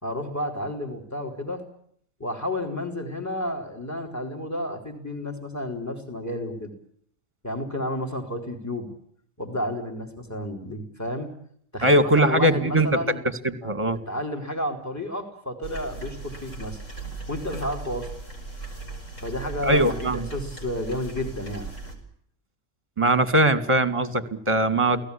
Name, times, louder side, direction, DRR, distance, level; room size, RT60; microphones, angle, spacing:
voice 1, 0.0-1.6 2.2-6.7 7.4-8.9 9.4-11.3 11.7-13.2 14.1-16.8 17.3-18.1 19.2-21.7, left 1 dB, 10° left, 6 dB, 4.0 m, -31 dB
voice 2, 11.8-13.0 13.4-14.0 19.6-20.2 23.0-25.0, right 1 dB, 20° right, 11 dB, 2.2 m, -21 dB
sound 1, 15.6-22.0, right 4 dB, 70° left, 5.7 m, -37 dB
29.0 x 18.5 x 8.6 m, 0.66 s
omnidirectional pair, 1.3 m